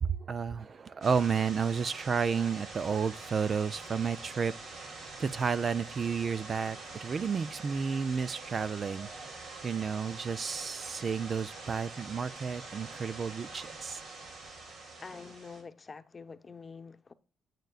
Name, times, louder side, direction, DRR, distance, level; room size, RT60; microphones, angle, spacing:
voice 1, 0.0-4.5 4.8-9.1 9.6-14.0, right 6 dB, 45° right, 0.4 m, -32 dB
sound 1, 1.0-15.6, right 3 dB, 70° right, 2.7 m, -45 dB
voice 2, 15.0-17.1, left 5 dB, 30° left, 0.9 m, -46 dB
9.2 x 9.1 x 2.4 m
cardioid pair, 90°, 0 cm